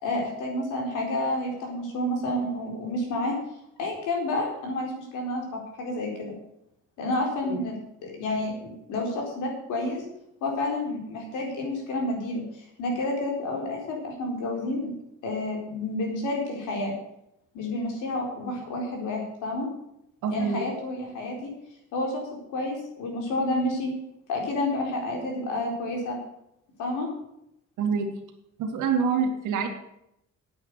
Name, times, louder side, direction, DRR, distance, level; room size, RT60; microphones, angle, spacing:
voice 1, 0.0-3.4 3.8-6.3 7.0-10.0 10.4-12.4 12.8-14.9 15.2-16.9 17.5-19.7 20.3-21.5 21.9-22.2 22.5-23.9 24.3-26.2 26.8-27.1, left 1 dB, 90° left, 0 dB, 4.4 m, -30 dB
voice 2, 20.2-20.6 27.8-28.1 28.6-29.7, right 6 dB, 90° right, 4 dB, 2.2 m, -26 dB
9.5 x 8.5 x 8.3 m, 0.79 s
cardioid pair, 90°, 30 cm